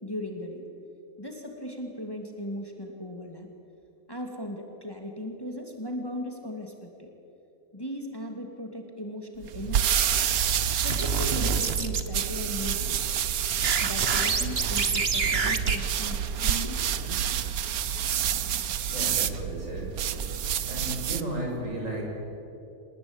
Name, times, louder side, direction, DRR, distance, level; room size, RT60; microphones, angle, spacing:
voice 1, 0.0-0.6 1.2-3.5 4.1-7.1 7.7-10.0 10.8-13.2 13.8-17.0, left 1 dB, 15° left, 3 dB, 2.4 m, -37 dB
sound 1, 9.4-21.3, right 9 dB, 85° right, 1.4 m, -28 dB
sound 2, 10.3-12.1 13.5-15.8, right 4 dB, 45° right, 1.5 m, -28 dB
voice 2, 18.9-19.9 20.6-22.0, right 1 dB, 60° right, -1 dB, 6.9 m, -34 dB
28.5 x 19.5 x 8.9 m, 2.9 s
omnidirectional pair, 1.5 m